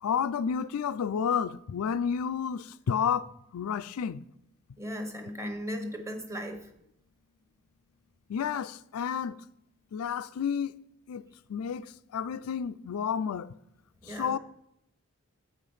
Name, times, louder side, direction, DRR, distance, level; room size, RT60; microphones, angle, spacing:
voice 1, 0.0-4.2 8.3-9.3 9.9-10.7 11.1-13.5 14.1-14.4, left 7 dB, 85° left, 0.4 m, -31 dB
voice 2, 4.8-6.7 14.0-14.4, equal, 15° right, 0.9 m, -37 dB
8.3 x 5.0 x 5.5 m
head